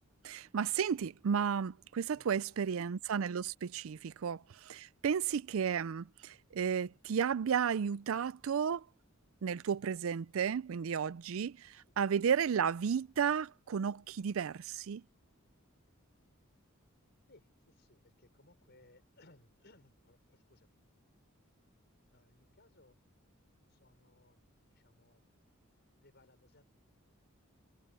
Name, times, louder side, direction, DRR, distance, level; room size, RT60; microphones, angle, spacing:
voice 1, 0.2-8.8 9.4-15.0, right 7 dB, 70° right, 0.4 m, -33 dB
voice 2, 2.1-2.7 3.9-4.1 5.1-5.2 11.7-11.9 17.3-20.8 22.1-22.9 23.7-25.3 26.0-26.7, left 2 dB, 55° left, 4.9 m, -65 dB
head